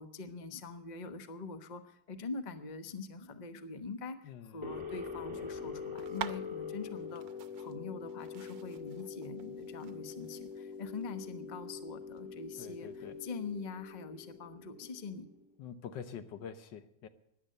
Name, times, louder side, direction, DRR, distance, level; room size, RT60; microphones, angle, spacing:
voice 1, 0.0-7.2 7.6-15.3, left 4 dB, 30° left, 9 dB, 1.0 m, -44 dB
voice 2, 4.2-4.7 12.6-13.2 15.6-17.1, left 7 dB, 70° left, 11 dB, 1.6 m, -46 dB
sound 1, 4.6-15.5, left 5 dB, 15° right, 1.7 m, -44 dB
sound 2, 6.0-13.6, right 10 dB, 80° right, 1.5 m, -49 dB
15.5 x 10.5 x 6.6 m, 0.79 s
omnidirectional pair, 2.0 m